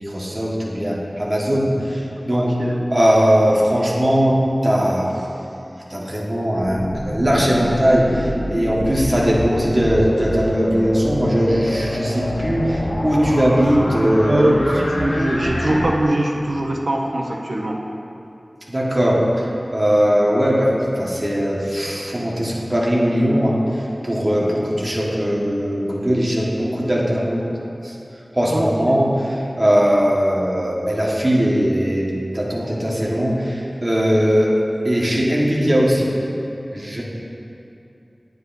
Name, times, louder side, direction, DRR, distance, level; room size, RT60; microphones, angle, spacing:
voice 1, 0.0-2.5 2.9-5.1 5.9-14.6 18.7-27.5 27.8-27.9 28.3-36.2 36.7-37.0, equal, 30° right, -4 dB, 1.5 m, -19 dB
voice 2, 2.3-2.8 14.3-17.8 28.5-29.0, right 1 dB, 80° right, -1 dB, 0.9 m, -22 dB
sound 1, 6.5-15.8, left 1 dB, 80° left, 1.0 m, -26 dB
9.6 x 9.3 x 2.7 m, 2.8 s
wide cardioid pair, 60°, 0 cm